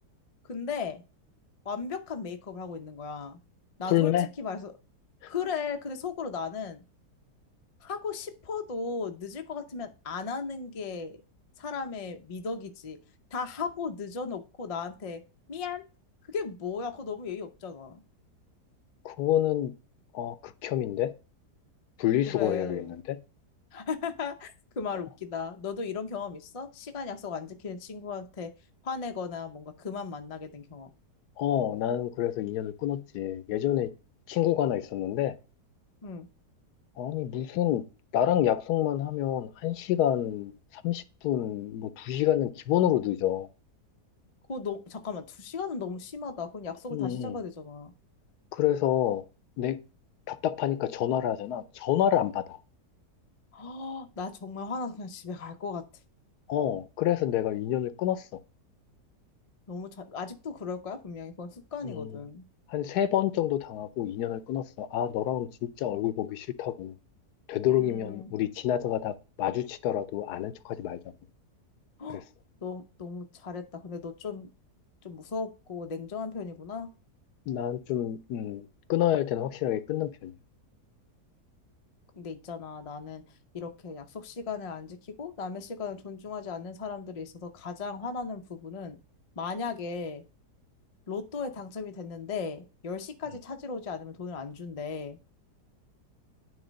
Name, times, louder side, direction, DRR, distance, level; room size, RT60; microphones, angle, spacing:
voice 1, 0.4-1.0 1.6-3.4 3.8-4.7 5.3-6.8 7.8-11.2 11.6-13.0 13.3-15.2 15.5-15.8 16.3-18.0 22.3-22.9 23.7-28.5 28.8-30.9 36.0-36.3 44.5-47.9 53.5-55.8 59.7-62.4 67.7-68.3 72.0-72.2 72.6-74.5 75.0-76.9 82.2-83.2 83.5-89.0 89.4-90.2 91.1-95.2, left 5 dB, 55° left, 0.3 m, -36 dB
voice 2, 3.9-4.3 5.2-5.3 19.0-19.7 20.1-21.1 22.0-23.0 31.4-33.9 34.3-35.4 37.0-37.8 38.1-43.5 46.9-47.4 48.5-49.2 49.6-49.8 50.3-52.6 56.5-58.3 61.8-62.1 62.7-66.9 67.5-71.0 72.1-72.2 77.5-80.3, left 11 dB, 75° left, 1.1 m, -28 dB
9.5 x 3.2 x 5.1 m
omnidirectional pair, 1.8 m